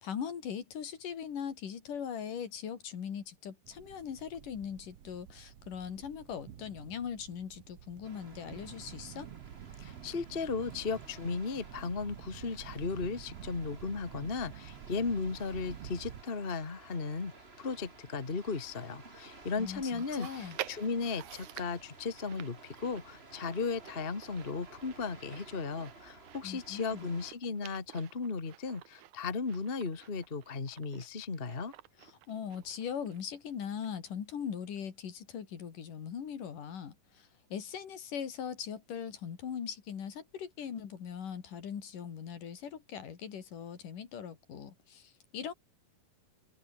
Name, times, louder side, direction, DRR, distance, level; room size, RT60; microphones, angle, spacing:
voice 1, 0.0-9.3 19.6-20.6 26.4-27.1 32.0-45.5, left 8 dB, 70° left, 4.2 m, -40 dB
sound 1, 3.6-16.2, right 10 dB, 55° right, 2.1 m, -49 dB
sound 2, 8.0-27.3, right 3 dB, 20° right, 2.4 m, -54 dB
voice 2, 9.8-17.3 17.6-31.7, left 4 dB, 25° left, 1.5 m, -36 dB
Chewing mastication, 20.0-33.5 33.8-33.9 34.8-34.9, right 14 dB, 70° right, 2.3 m, -50 dB
omnidirectional pair, 3.9 m